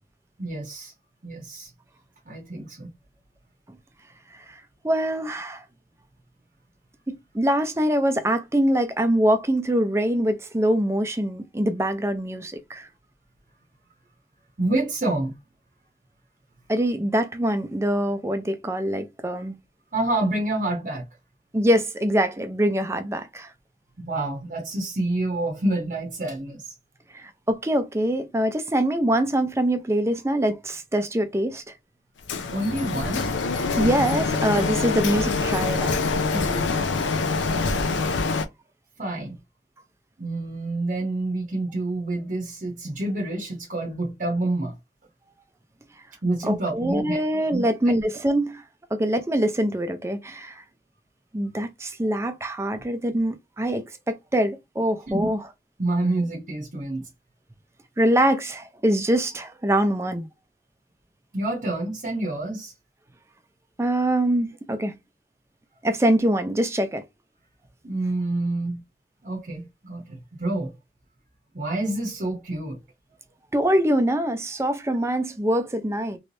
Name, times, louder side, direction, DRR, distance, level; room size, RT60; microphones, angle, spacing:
voice 1, 0.4-0.9 1.2-1.7 2.3-2.9 14.6-15.3 19.9-21.0 24.0-26.7 32.5-33.2 39.0-39.4 40.2-44.7 46.2-47.2 47.5-47.6 55.1-55.3 55.8-57.0 61.3-62.7 67.8-68.8 69.2-70.7 71.5-72.8, right 2 dB, 45° right, 0.8 m, -27 dB
voice 2, 4.3-5.6 7.1-12.9 16.7-19.6 21.5-23.5 27.1-31.6 33.8-35.9 36.3-36.7 46.4-48.6 48.9-50.6 51.3-55.4 58.0-60.3 63.8-64.9 65.8-67.0 73.5-76.2, right 1 dB, 15° right, 0.5 m, -24 dB
Printer, 32.3-38.5, left 4 dB, 85° left, 0.6 m, -25 dB
3.2 x 3.1 x 2.6 m
head